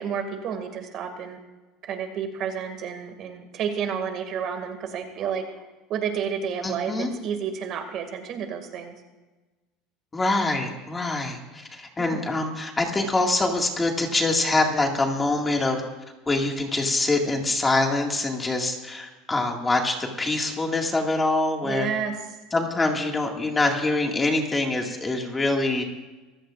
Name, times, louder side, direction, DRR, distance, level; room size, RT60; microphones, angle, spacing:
voice 1, 0.0-1.4 1.9-5.4 5.9-8.9 12.0-12.2 21.6-22.1, right 7 dB, 45° right, 6 dB, 2.2 m, -30 dB
voice 2, 6.6-7.1 10.1-15.8 16.3-21.9 22.5-25.8, left 2 dB, 15° left, 1 dB, 2.0 m, -24 dB
25.5 x 15.5 x 2.5 m, 1.2 s
supercardioid pair, 145°, 0 cm